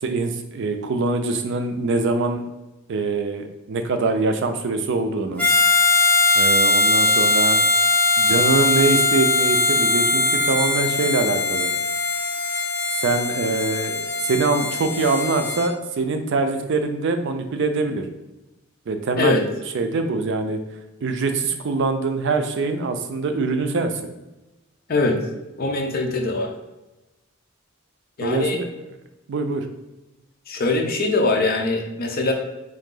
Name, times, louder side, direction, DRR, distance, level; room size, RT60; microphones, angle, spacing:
voice 1, 0.0-2.4 2.9-5.5 6.3-7.6 8.2-11.7 12.9-18.0 18.9-19.4 19.7-20.6 21.0-24.1 28.2-28.7 29.3-29.7, right 3 dB, 60° right, 7 dB, 0.5 m, -23 dB
Harmonica, 5.4-15.7, left 2 dB, 5° left, 0.9 m, -20 dB
voice 2, 25.6-26.5 28.2-28.6 30.5-32.3, left 3 dB, 50° left, 3 dB, 0.6 m, -22 dB
3.8 x 2.7 x 3.8 m, 1.0 s
head